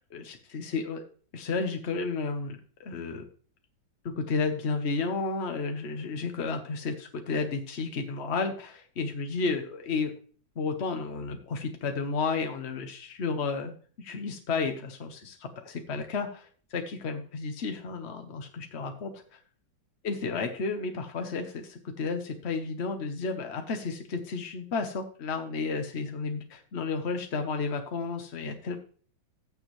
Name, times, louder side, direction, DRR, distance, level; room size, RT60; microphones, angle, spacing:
voice 1, 0.1-1.0 1.3-3.2 4.2-10.1 10.6-13.7 14.0-19.4 20.0-28.8, left 4 dB, 50° left, 6 dB, 0.8 m, -32 dB
14.5 x 7.1 x 3.1 m, 0.44 s
omnidirectional pair, 2.3 m